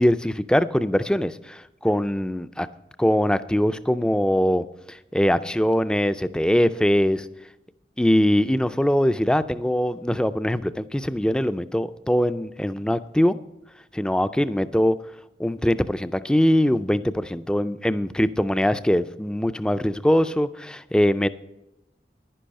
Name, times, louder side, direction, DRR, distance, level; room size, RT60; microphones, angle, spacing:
voice 1, 0.0-2.7 3.0-7.3 8.0-13.4 13.9-15.0 15.4-21.3, equal, 5° left, 13 dB, 0.3 m, -22 dB
10.5 x 10.0 x 5.3 m, 0.94 s
head